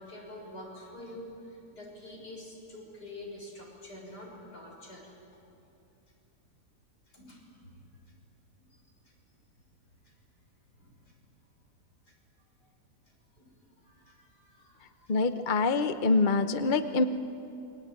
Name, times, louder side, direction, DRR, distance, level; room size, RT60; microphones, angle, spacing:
voice 1, 0.0-5.1 7.1-7.9 8.6-9.1 10.0-10.1 10.8-11.1 12.1-12.2 12.6-12.7 13.3-15.2, left 1 dB, 80° left, -1 dB, 7.0 m, -47 dB
voice 2, 15.1-17.0, left 3 dB, 35° left, 9 dB, 0.9 m, -25 dB
28.0 x 23.0 x 9.0 m, 2.8 s
omnidirectional pair, 1.7 m